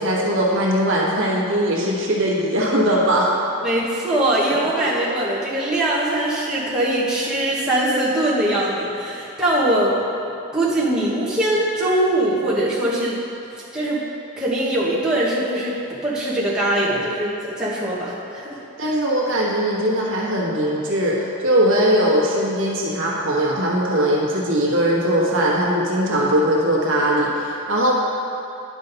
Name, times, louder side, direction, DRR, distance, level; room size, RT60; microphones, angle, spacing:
voice 1, 0.0-3.4 4.8-4.9 18.8-27.9, equal, 60° right, -4 dB, 1.4 m, -20 dB
voice 2, 3.6-10.0 10.5-13.2 13.7-14.0 14.4-15.7 16.0-19.0, right 1 dB, 5° right, -9 dB, 1.2 m, -22 dB
10.5 x 5.7 x 4.0 m, 2.7 s
head